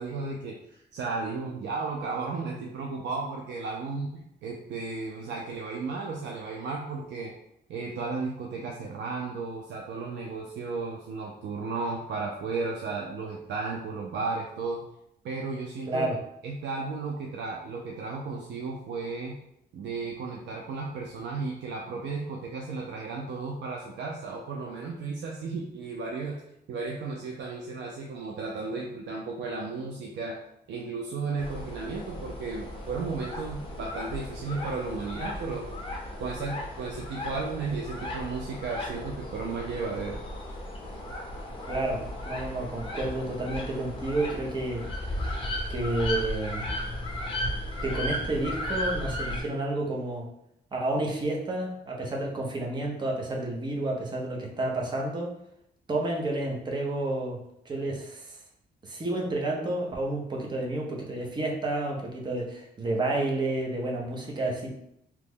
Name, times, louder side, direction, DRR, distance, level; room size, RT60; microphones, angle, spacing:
voice 1, 0.0-7.3 7.7-14.8 15.2-16.1 16.4-19.4 19.7-26.4 26.7-30.4 30.7-35.7 36.2-40.2, right 4 dB, 75° right, -1 dB, 0.5 m, -34 dB
voice 2, 15.9-16.2 41.7-42.0 42.3-44.9 45.7-46.6 47.8-50.2 50.7-55.3 55.9-57.4 57.6-58.4 58.8-64.7, right 2 dB, 25° right, -1 dB, 0.6 m, -30 dB
sound 1, 31.4-49.4, left 1 dB, 30° left, 0.9 m, -35 dB
3.0 x 2.1 x 3.5 m, 0.77 s
cardioid pair, 135°, 18 cm